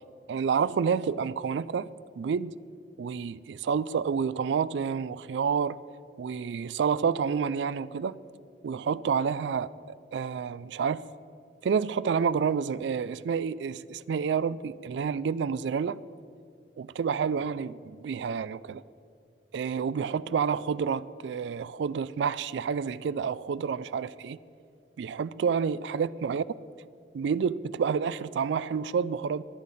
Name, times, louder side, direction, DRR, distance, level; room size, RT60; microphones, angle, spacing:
voice 1, 0.3-1.9 2.2-2.5 3.0-5.8 6.2-8.2 8.6-9.7 10.1-11.1 11.6-16.0 16.8-18.8 19.5-24.4 25.0-26.4 27.1-29.4, right 6 dB, 80° right, 0.3 m, -29 dB
23.0 x 8.3 x 4.1 m
head